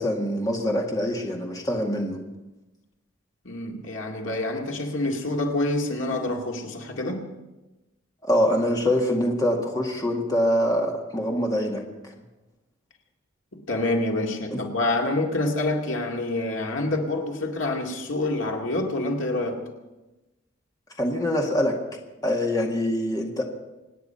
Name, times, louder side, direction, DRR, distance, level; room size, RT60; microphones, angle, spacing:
voice 1, 0.0-2.2 8.2-11.8 14.5-14.6 21.0-21.8 22.2-23.4, equal, 20° left, 0 dB, 2.0 m, -24 dB
voice 2, 3.4-7.3 13.5-19.7, left 2 dB, 70° left, 1 dB, 2.2 m, -27 dB
25.5 x 9.7 x 5.7 m, 1.1 s
head